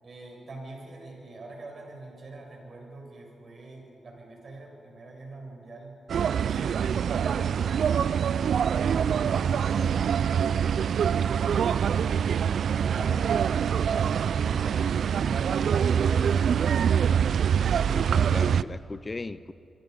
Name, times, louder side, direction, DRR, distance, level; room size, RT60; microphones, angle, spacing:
voice 1, 0.0-6.0 6.4-8.6 8.9-10.4 10.8-16.6, right 2 dB, 55° right, 0 dB, 7.8 m, -44 dB
sound 1, 6.1-18.6, right 8 dB, 70° right, 0.4 m, -24 dB
voice 2, 17.7-19.5, left 3 dB, 35° left, 15 dB, 0.7 m, -37 dB
26.0 x 25.0 x 5.6 m, 2.7 s
supercardioid pair, 45°, 0 cm